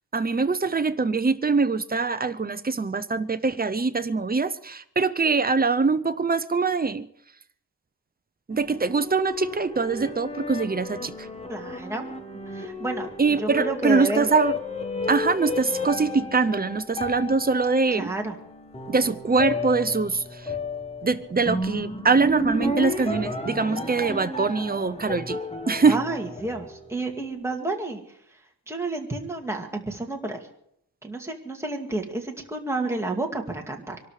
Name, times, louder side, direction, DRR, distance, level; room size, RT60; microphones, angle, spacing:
voice 1, 0.1-7.1 8.5-11.3 13.2-14.5 15.1-18.1 18.9-20.5 21.0-25.4 25.7-26.0, right 4 dB, 25° right, 11 dB, 0.7 m, -23 dB
sound 1, 8.5-27.1, left 2 dB, 15° left, 1.5 m, -33 dB
voice 2, 11.5-12.1 12.5-13.1 13.4-14.3 17.9-18.4 23.7-24.0 25.9-28.0 28.7-30.4 31.0-34.0, right 2 dB, 5° right, 1 dB, 2.2 m, -30 dB
24.0 x 12.5 x 4.9 m, 0.72 s
wide cardioid pair, 135°, 40 cm